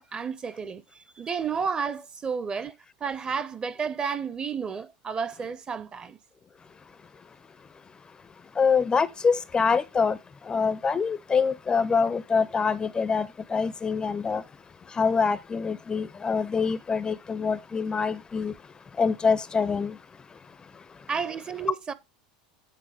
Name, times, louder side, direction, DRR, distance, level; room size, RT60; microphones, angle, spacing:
voice 1, 0.0-2.7 3.0-6.2 21.1-21.9, right 6 dB, 25° right, 0.6 m, -31 dB
voice 2, 8.6-10.2 10.5-14.4 14.9-18.5 19.0-20.0, left 5 dB, 20° left, 0.4 m, -25 dB
8.5 x 4.2 x 4.8 m
hypercardioid pair, 85°, 4 cm